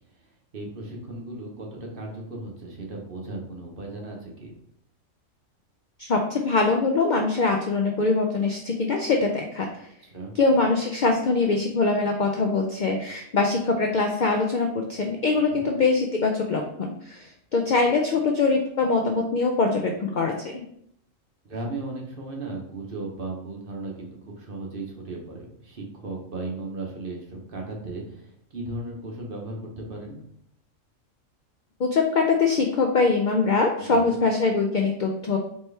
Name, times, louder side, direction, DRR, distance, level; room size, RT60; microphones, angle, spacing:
voice 1, 0.5-4.5 10.1-10.3 15.3-15.7 21.4-30.2 33.8-34.2, right 2 dB, 45° right, -1 dB, 1.0 m, -36 dB
voice 2, 6.0-9.7 10.4-20.6 31.8-35.4, left 3 dB, 65° left, 2 dB, 0.4 m, -23 dB
4.3 x 3.2 x 3.3 m, 0.70 s
omnidirectional pair, 1.4 m